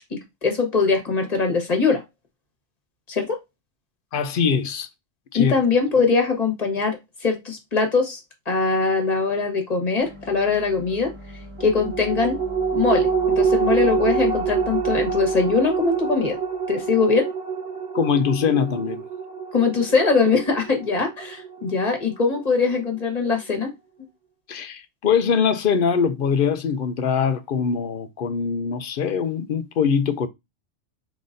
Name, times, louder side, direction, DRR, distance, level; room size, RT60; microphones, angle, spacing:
voice 1, 0.1-2.0 3.1-3.4 5.3-8.2 8.4-11.1 11.6-12.4 12.7-16.4 16.7-17.3 19.5-23.7, left 4 dB, 35° left, 1.4 m, -22 dB
voice 2, 4.1-4.9 5.3-5.5 17.9-19.0 24.5-30.3, left 6 dB, 55° left, 0.7 m, -22 dB
sound 1, 10.0-17.1, equal, 30° right, 0.6 m, -40 dB
sound 2, 11.6-22.4 22.8-22.9, right 6 dB, 60° right, 1.0 m, -26 dB
5.0 x 3.9 x 2.6 m
omnidirectional pair, 1.3 m